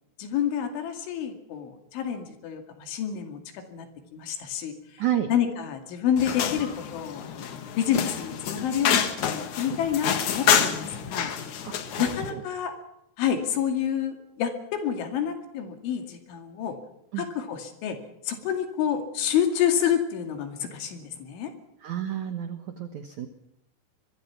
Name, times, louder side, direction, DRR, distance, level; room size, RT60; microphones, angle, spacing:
voice 1, 0.2-3.9 4.1-4.7 5.3-11.3 12.0-12.7 13.2-16.8 17.2-18.0 18.3-21.5, left 9 dB, 85° left, 6 dB, 4.8 m, -28 dB
voice 2, 5.0-5.3 11.6-11.7 12.3-12.4 17.1-17.2 21.8-23.3, right 11 dB, 70° right, 8 dB, 1.8 m, -30 dB
sound 1, 6.2-12.3, left 8 dB, 55° left, 2.2 m, -27 dB
24.0 x 22.5 x 5.9 m, 0.81 s
omnidirectional pair, 5.3 m